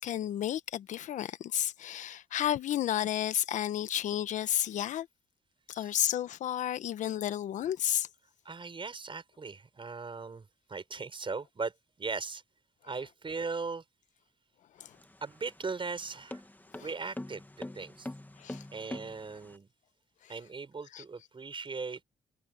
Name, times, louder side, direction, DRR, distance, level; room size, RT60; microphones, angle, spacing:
voice 1, 0.0-5.1 5.7-8.1 14.8-14.9 16.8-16.9 18.4-18.6 20.9-21.0, left 11 dB, 80° left, 1.1 m, -32 dB
voice 2, 8.4-11.7 12.0-12.4 12.8-13.8 15.2-16.4 16.8-18.1 18.7-19.7 20.3-22.0, right 4 dB, 45° right, 5.0 m, -38 dB
sound 1, 14.8-19.6, left 1 dB, 15° left, 2.0 m, -44 dB
supercardioid pair, 50°, 13 cm